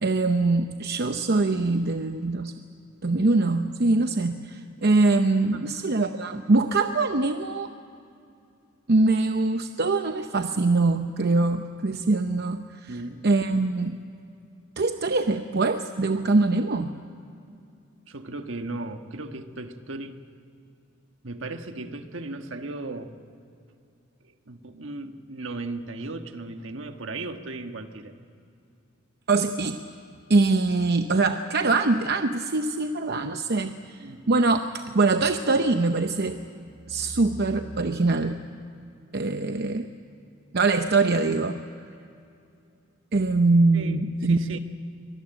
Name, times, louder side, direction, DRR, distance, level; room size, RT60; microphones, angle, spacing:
voice 1, 0.0-2.5 3.0-7.7 8.9-13.0 13.2-14.0 14.8-16.9 29.3-29.8 30.3-36.4 36.9-38.4 39.1-39.9 40.5-41.6 43.1-44.6, right 3 dB, 55° right, 7 dB, 0.8 m, -23 dB
voice 2, 5.5-6.0 12.9-13.3 18.1-20.2 21.2-23.1 24.2-28.1 34.0-34.3 43.7-44.0 44.2-44.6, right 2 dB, 70° right, 6 dB, 1.5 m, -36 dB
24.0 x 19.5 x 9.0 m, 2.6 s
head